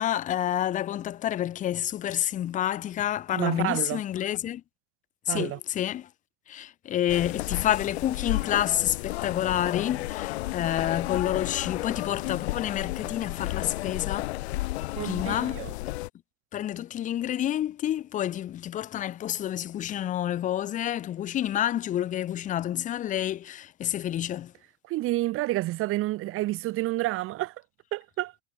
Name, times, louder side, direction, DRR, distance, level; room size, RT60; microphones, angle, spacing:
voice 1, 0.0-4.6 5.3-6.1 6.5-14.3 15.0-15.9 16.5-24.5, left 11 dB, 25° left, 0.8 m, -29 dB
voice 2, 3.3-4.0 5.3-5.6 15.0-15.7 24.9-27.5 27.9-28.3, right 17 dB, 40° right, 3.0 m, -29 dB
sound 1, 7.1-16.1, left 18 dB, 70° left, 4.1 m, -32 dB
supercardioid pair, 135°, 34 cm